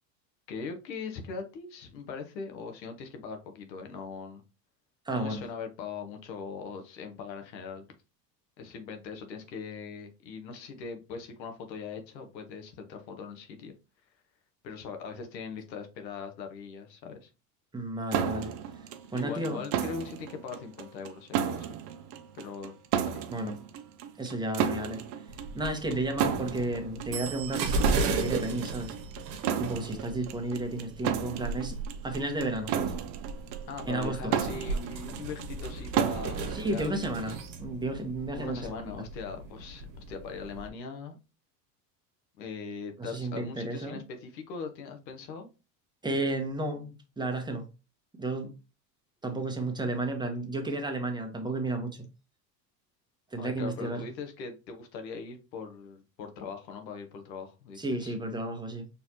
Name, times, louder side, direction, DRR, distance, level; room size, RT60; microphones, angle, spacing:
voice 1, 0.5-4.4 5.1-7.8 8.6-13.7 14.6-17.3 19.1-21.7 22.3-23.3 33.7-37.4 38.3-41.2 42.4-45.5 53.4-58.1, left 5 dB, 85° left, 1.1 m, -40 dB
voice 2, 5.0-5.4 17.7-18.5 19.1-19.6 23.3-23.6 24.2-25.0 25.5-28.9 29.6-31.8 32.0-32.9 33.9-34.3 36.5-39.1 43.0-44.0 46.0-47.7 48.1-48.6 49.2-52.1 53.3-54.1 57.8-58.9, right 2 dB, 10° right, 1.2 m, -32 dB
sound 1, 18.1-37.5, right 8 dB, 55° right, 0.8 m, -33 dB
sound 2, 25.3-40.7, right 3 dB, 80° right, 1.0 m, -36 dB
4.5 x 3.4 x 2.9 m
hypercardioid pair, 85°, 50 cm